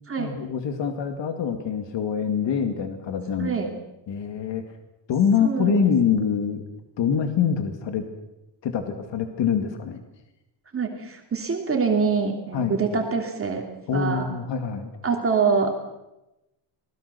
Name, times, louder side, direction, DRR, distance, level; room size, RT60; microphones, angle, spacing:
voice 1, 0.2-3.5 4.1-4.6 5.1-6.6 7.0-8.1 8.6-10.0 12.5-12.8 13.9-14.9, left 7 dB, 75° left, 7 dB, 2.4 m, -25 dB
voice 2, 5.4-5.9 10.7-13.6 13.9-14.3 15.0-15.9, right 5 dB, 30° right, 2 dB, 2.9 m, -25 dB
26.5 x 20.0 x 6.9 m, 0.94 s
cardioid pair, 165°, 45 cm